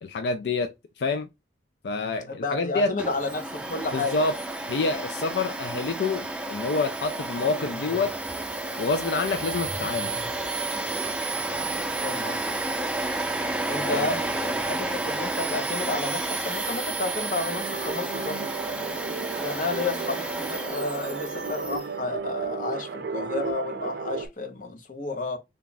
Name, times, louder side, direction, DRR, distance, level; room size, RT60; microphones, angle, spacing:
voice 1, 0.0-0.7 1.0-1.3 1.8-2.9 3.9-4.3 4.7-8.1 8.8-10.2 13.8-14.2, left 3 dB, 70° left, 0.4 m, -27 dB
voice 2, 2.3-4.3 11.8-12.5 13.7-18.4 19.4-25.4, left 3 dB, 45° left, 0.8 m, -31 dB
Domestic sounds home sounds, 3.0-21.9, right 2 dB, 5° right, 0.4 m, -31 dB
sound 1, 7.3-11.9, equal, 10° left, 0.8 m, -44 dB
sound 2, 17.5-24.3, right 5 dB, 65° right, 0.5 m, -34 dB
3.4 x 2.4 x 3.9 m
head